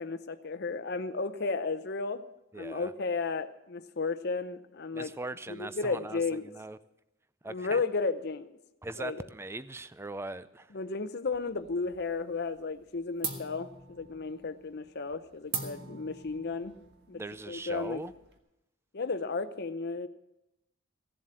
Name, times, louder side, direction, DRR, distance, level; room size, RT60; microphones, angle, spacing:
voice 1, 0.0-2.2 2.5-5.1 5.5-6.5 7.5-8.5 9.0-9.2 10.7-16.8 17.1-17.2 17.5-18.0 18.9-20.1, left 4 dB, 55° left, 10 dB, 0.7 m, -33 dB
voice 2, 2.5-2.9 4.9-6.8 7.4-7.8 8.8-10.8 17.1-18.1, right 2 dB, 15° right, 15 dB, 0.4 m, -40 dB
sound 1, 11.3-12.2 12.5-12.9 13.2-18.4, right 5 dB, 55° right, 1.6 m, -42 dB
16.5 x 7.6 x 8.6 m, 0.91 s
head